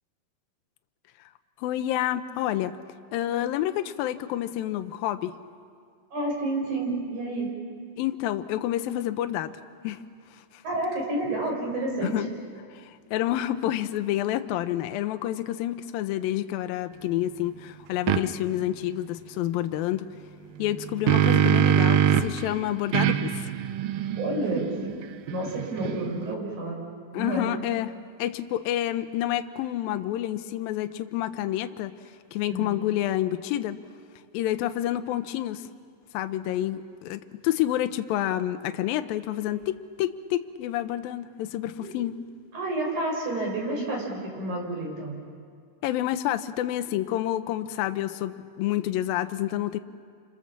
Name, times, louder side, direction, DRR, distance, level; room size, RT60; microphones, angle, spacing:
voice 1, 1.6-2.8 3.1-5.4 8.0-9.5 9.8-10.0 10.3-10.6 12.0-12.3 12.7-20.1 20.6-23.5 27.1-31.9 32.3-33.8 34.3-35.7 36.1-42.2 45.8-49.8, left 13 dB, 80° left, 9 dB, 2.6 m, -29 dB
voice 2, 6.1-7.5 10.6-12.1 24.2-25.0 25.2-26.8 27.2-27.4 32.5-32.8 41.8-41.9 42.5-45.2, right 2 dB, 55° right, 0 dB, 7.4 m, -30 dB
sound 1, 18.1-18.2 20.6-22.4 22.9-26.3, right 10 dB, 80° right, 2.6 m, -23 dB
30.0 x 26.5 x 7.3 m, 2.1 s
omnidirectional pair, 4.2 m